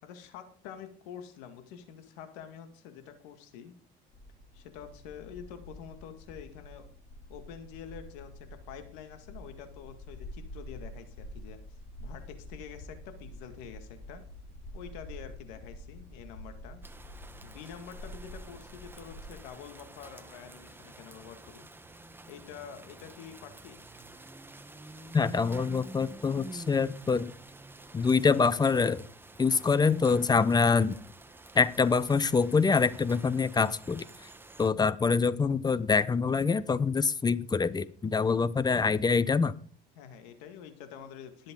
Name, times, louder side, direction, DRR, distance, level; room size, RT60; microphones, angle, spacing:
voice 1, 0.0-3.8 4.5-6.9 7.3-11.6 12.0-14.2 14.7-16.8 17.4-21.7 22.3-23.8 40.0-41.5, left 8 dB, 90° left, 7 dB, 2.1 m, -47 dB
sound 1, 4.1-19.5, left 1 dB, 40° left, 3.4 m, -47 dB
sound 2, 16.8-34.7, right 2 dB, 10° right, 1.1 m, -49 dB
voice 2, 25.1-27.3 27.9-29.0 29.4-30.9 31.5-34.0 34.6-39.5, left 5 dB, 20° left, 17 dB, 0.7 m, -25 dB
20.0 x 7.7 x 3.8 m, 0.43 s
cardioid pair, 105°, 21 cm